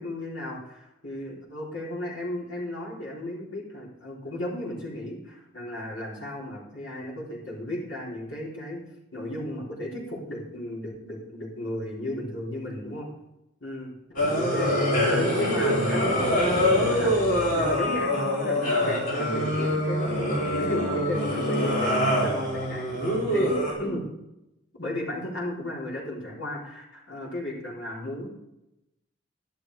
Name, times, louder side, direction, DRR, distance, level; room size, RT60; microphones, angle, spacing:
voice 1, 0.0-8.8 9.1-13.1 13.6-17.2 17.5-23.0 23.3-24.1 24.7-28.3, left 1 dB, 75° left, -5 dB, 4.1 m, -35 dB
sound 1, 14.2-23.7, equal, 45° left, 4.0 m, -24 dB
11.5 x 10.5 x 4.9 m, 0.90 s
head